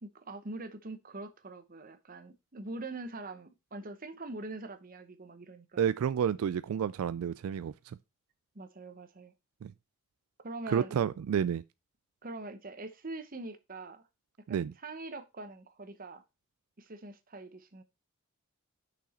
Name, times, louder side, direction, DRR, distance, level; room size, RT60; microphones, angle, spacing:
voice 1, 0.0-5.9 8.5-9.3 10.4-11.0 12.2-14.0 14.5-16.2 16.8-17.8, right 2 dB, 40° right, 0.9 m, -43 dB
voice 2, 5.8-7.7 9.6-9.7 10.7-11.6 14.5-14.7, right 8 dB, 85° right, 0.3 m, -30 dB
6.1 x 5.7 x 4.2 m
head